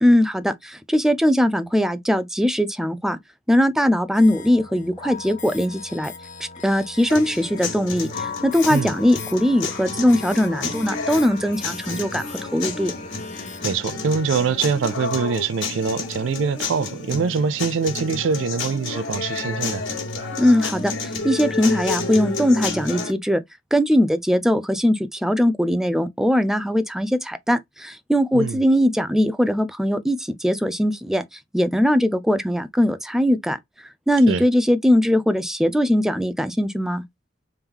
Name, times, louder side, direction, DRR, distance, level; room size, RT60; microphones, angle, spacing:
voice 1, 0.0-3.2 3.5-6.1 6.6-12.2 12.5-12.9 20.4-23.4 23.7-31.2 31.5-33.6 34.1-37.0, equal, ahead, 0.5 m, -20 dB
sound 1, 4.1-13.8, left 5 dB, 40° left, 0.9 m, -38 dB
sound 2, 7.1-23.1, left 3 dB, 70° left, 1.9 m, -30 dB
voice 2, 13.6-19.8 28.3-28.6 34.3-34.4, right 5 dB, 70° right, 0.4 m, -24 dB
3.6 x 3.4 x 2.9 m
head